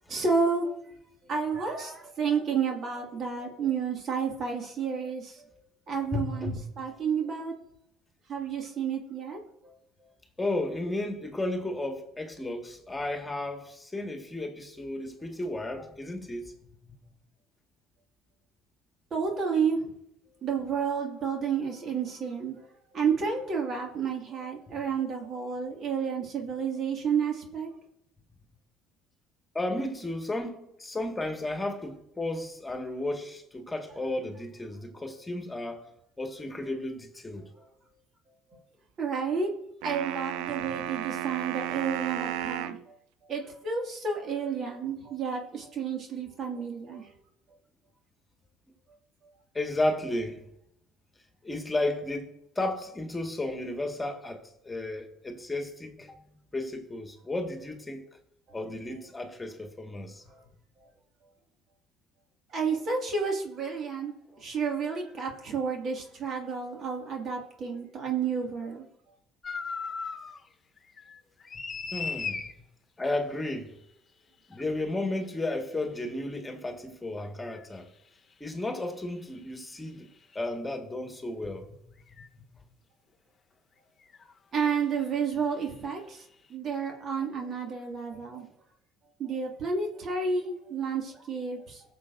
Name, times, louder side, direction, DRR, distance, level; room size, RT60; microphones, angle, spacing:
voice 1, 0.1-0.8 1.3-5.5 5.9-7.5 8.3-9.7 19.1-19.9 20.4-22.6 22.9-27.7 39.0-39.5 39.8-42.9 43.3-47.1 62.5-68.9 84.5-86.2 86.5-88.5 89.2-91.8, right 5 dB, 50° right, 2.2 m, -31 dB
voice 2, 6.1-6.7 10.4-16.5 16.9-17.0 24.7-24.8 29.5-35.8 36.2-37.5 40.7-40.8 49.5-50.5 51.4-52.3 52.6-58.1 58.5-60.2 71.9-72.5 73.0-73.7 74.5-77.8 78.4-80.1 80.4-81.8, left 2 dB, 15° left, 1.8 m, -33 dB
sound 1, 39.8-42.8, right 11 dB, 75° right, 0.4 m, -33 dB
sound 2, 69.4-70.4 70.8-72.5 74.5-74.6 77.5-77.6 80.3-80.4 82.1-82.3 84.1-84.3 84.6-84.8, left 5 dB, 35° left, 1.1 m, -36 dB
20.5 x 6.9 x 2.7 m
hypercardioid pair, 70°, 0 cm